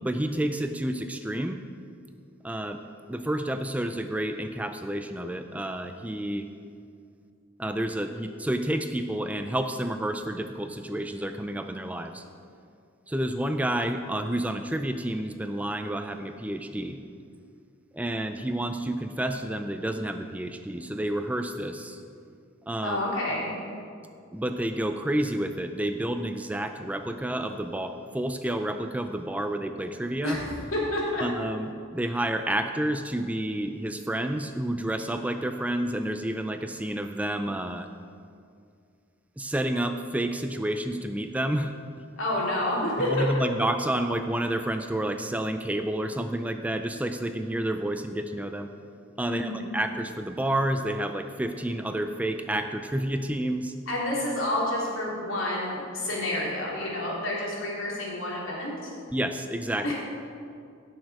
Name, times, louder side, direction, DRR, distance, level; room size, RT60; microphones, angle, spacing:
voice 1, 0.0-1.6 2.4-2.8 3.1-6.5 7.6-12.2 13.1-17.0 17.9-22.0 22.7-23.0 24.3-30.4 31.2-37.9 39.4-41.7 43.1-48.7 49.2-53.7 59.1-59.9, right 1 dB, 5° right, 7 dB, 0.4 m, -30 dB
voice 2, 22.8-23.5 30.2-31.2 42.2-43.2 49.3-49.7 53.9-58.9 59.8-59.9, left 1 dB, 85° left, -4 dB, 3.1 m, -29 dB
16.5 x 6.5 x 4.7 m, 2.3 s
head